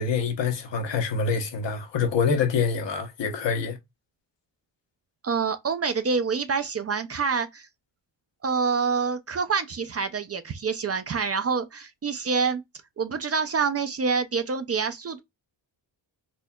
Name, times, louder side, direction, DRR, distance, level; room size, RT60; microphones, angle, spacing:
voice 1, 0.0-3.8, left 5 dB, 70° left, 0.9 m, -26 dB
voice 2, 5.2-7.7 8.4-12.6 13.0-15.2, right 5 dB, 35° right, 0.4 m, -26 dB
4.2 x 2.7 x 2.2 m
cardioid pair, 110°, 46 cm